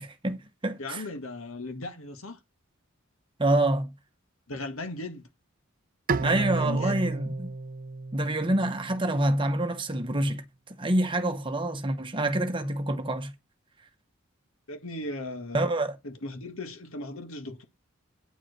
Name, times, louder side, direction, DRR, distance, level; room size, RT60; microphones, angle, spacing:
voice 1, 0.0-1.0 3.4-3.9 6.2-7.5 8.1-10.4 10.8-13.3 15.5-16.0, right 1 dB, 25° right, 1.0 m, -27 dB
voice 2, 0.8-2.4 4.5-5.3 6.2-7.0 14.7-15.6 16.0-17.6, left 2 dB, 75° left, 1.9 m, -37 dB
Bowed string instrument, 6.1-9.3, right 3 dB, 40° right, 0.5 m, -32 dB
9.1 x 4.8 x 6.6 m
head